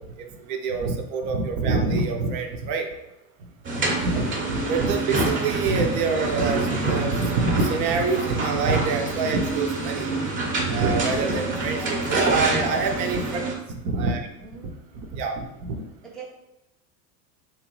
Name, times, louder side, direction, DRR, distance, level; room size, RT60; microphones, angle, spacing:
voice 1, 0.2-2.9 4.0-4.3 4.5-10.1 10.7-13.4 13.8-14.3 15.1-15.8, right 4 dB, 70° right, 4 dB, 0.7 m, -25 dB
sound 1, 3.6-13.5, right 2 dB, 25° right, 0.8 m, -27 dB
voice 2, 11.8-12.1 12.5-12.9 14.4-14.8 16.0-16.3, right 2 dB, ahead, -3 dB, 0.4 m, -40 dB
3.3 x 3.0 x 3.0 m, 0.91 s
supercardioid pair, 105°, 47 cm